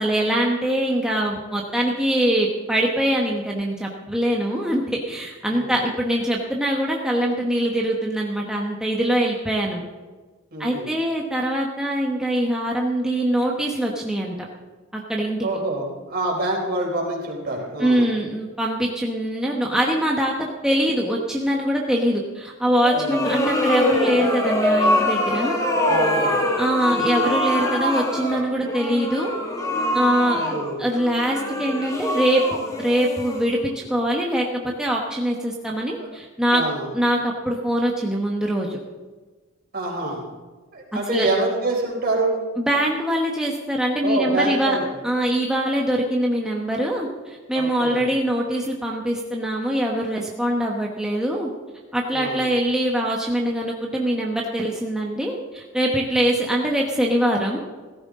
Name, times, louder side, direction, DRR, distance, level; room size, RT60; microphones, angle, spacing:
voice 1, 0.0-9.8 10.6-14.5 14.9-15.4 17.8-25.6 26.6-29.3 29.9-32.4 32.8-36.6 36.9-38.8 41.1-41.3 42.6-44.8 45.0-51.5 51.9-57.6, right 1 dB, 5° right, -2 dB, 1.1 m, -23 dB
voice 2, 10.5-10.9 15.4-18.1 22.9-23.3 25.8-26.4 30.4-30.8 36.0-36.1 36.5-36.9 39.7-40.3 40.7-42.4 44.0-44.9 47.5-48.1 52.1-52.5, right 2 dB, 50° right, 0 dB, 3.8 m, -26 dB
sound 1, 22.8-33.8, left 1 dB, 15° left, 1.6 m, -24 dB
16.5 x 14.0 x 3.7 m, 1.3 s
head